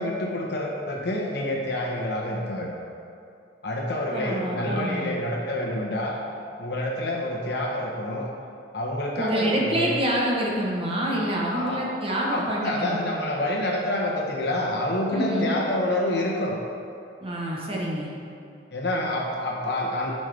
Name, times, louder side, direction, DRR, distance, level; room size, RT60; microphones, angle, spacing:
voice 1, 0.0-2.7 3.6-6.2 6.6-8.3 8.7-9.9 11.5-11.8 12.3-16.6 18.7-20.1, left 1 dB, 60° left, -1 dB, 1.1 m, -27 dB
voice 2, 4.1-5.1 9.2-13.1 15.1-15.6 17.2-18.1, right 1 dB, 30° right, -3 dB, 1.0 m, -27 dB
9.8 x 5.4 x 3.4 m, 2.5 s
head